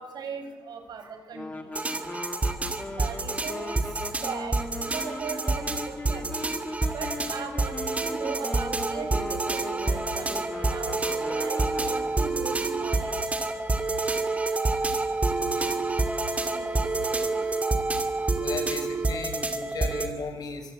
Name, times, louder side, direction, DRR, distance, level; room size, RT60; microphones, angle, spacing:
voice 1, 0.0-1.7 3.0-3.8 4.2-4.6 4.9-6.5 6.9-13.1 16.5-16.8 17.1-17.4, right 5 dB, 85° right, 6 dB, 5.8 m, -38 dB
sound 1, 1.3-12.3, left 2 dB, 20° left, 2.1 m, -38 dB
sound 2, 1.8-20.1, right 3 dB, 20° right, 2.4 m, -28 dB
voice 2, 15.4-15.7 17.1-17.2 18.4-20.7, left 4 dB, 70° left, 6 dB, 5.9 m, -36 dB
25.0 x 24.5 x 8.7 m, 1.2 s
wide cardioid pair, 170°, 7 cm